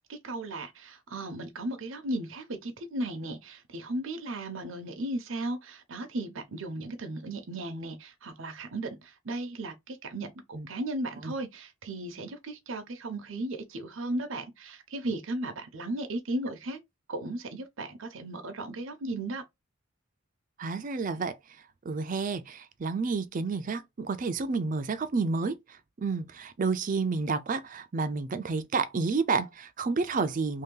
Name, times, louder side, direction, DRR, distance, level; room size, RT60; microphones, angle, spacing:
voice 1, 0.1-10.3 10.7-16.8 17.1-19.4, right 1 dB, 85° right, 0.8 m, -36 dB
voice 2, 20.6-21.3 21.8-25.6 26.0-30.6, right 4 dB, 40° right, 0.4 m, -30 dB
3.2 x 2.7 x 3.7 m
head